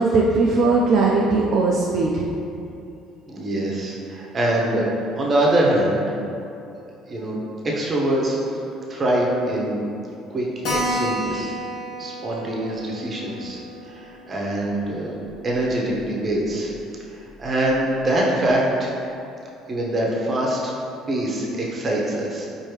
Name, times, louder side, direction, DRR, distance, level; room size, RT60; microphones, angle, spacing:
voice 1, 0.0-2.3, right 3 dB, 60° right, -2 dB, 0.4 m, -19 dB
voice 2, 3.3-6.1 7.1-8.4 8.9-9.9 10.3-10.4 10.7-11.5 12.0-13.6 13.9-15.1 15.4-16.7 17.1-18.9 19.7-20.7 21.1-22.5, right 1 dB, 35° right, -3 dB, 0.9 m, -24 dB
Keyboard (musical), 10.6-15.7 16.0-16.1 16.4-16.5 16.7-16.8 17.4-17.7, equal, 75° left, 0.7 m, -31 dB
4.5 x 2.6 x 3.2 m, 2.6 s
supercardioid pair, 85°, 0 cm